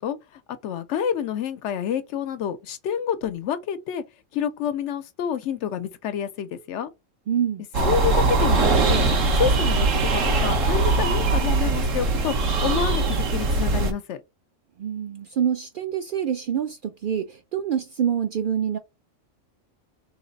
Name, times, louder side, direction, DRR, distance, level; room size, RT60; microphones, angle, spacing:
voice 1, 0.0-4.0 4.3-6.9 7.8-9.1 9.4-9.9 10.1-14.2, left 8 dB, 75° left, 0.9 m, -28 dB
voice 2, 7.3-7.7 14.8-18.8, right 8 dB, 60° right, 0.5 m, -26 dB
sound 1, 7.7-13.9, right 3 dB, 90° right, 1.3 m, -21 dB
3.2 x 3.2 x 3.9 m
omnidirectional pair, 1.3 m